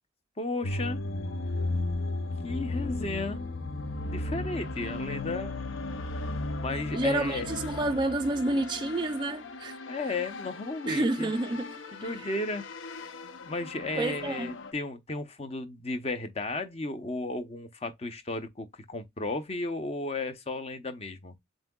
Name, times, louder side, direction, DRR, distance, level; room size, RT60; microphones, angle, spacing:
voice 1, 0.4-1.0 2.4-3.4 4.1-5.6 6.6-7.5 9.8-11.3 11.9-12.6 13.5-21.3, left 2 dB, 30° left, 0.7 m, -34 dB
sound 1, 0.6-14.7, left 2 dB, 80° left, 0.6 m, -36 dB
voice 2, 6.9-9.8 10.9-11.7 14.0-14.5, right 2 dB, 25° right, 0.3 m, -29 dB
7.3 x 2.6 x 2.3 m
head